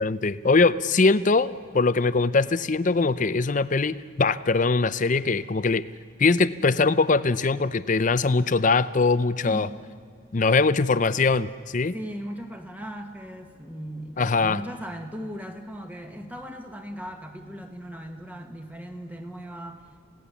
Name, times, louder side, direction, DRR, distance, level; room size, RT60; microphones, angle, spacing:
voice 1, 0.0-5.8 6.2-9.7 10.3-11.9 14.2-14.6, left 3 dB, 35° left, 14 dB, 0.5 m, -22 dB
voice 2, 11.9-19.8, equal, 10° right, 4 dB, 1.5 m, -37 dB
28.5 x 17.0 x 7.1 m, 2.1 s
head